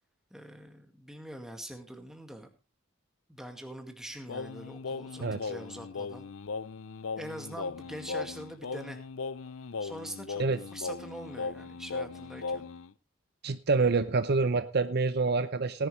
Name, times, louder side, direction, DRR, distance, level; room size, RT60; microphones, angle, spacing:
voice 1, 0.3-2.5 3.3-6.3 7.2-9.0 9.8-12.7, right 1 dB, ahead, 4 dB, 2.0 m, -44 dB
Singing, 4.3-12.9, left 4 dB, 75° left, 0.6 m, -38 dB
voice 2, 5.2-5.5 10.4-10.6 13.4-15.9, right 4 dB, 50° right, 12 dB, 0.7 m, -27 dB
18.0 x 11.0 x 3.2 m, 0.28 s
head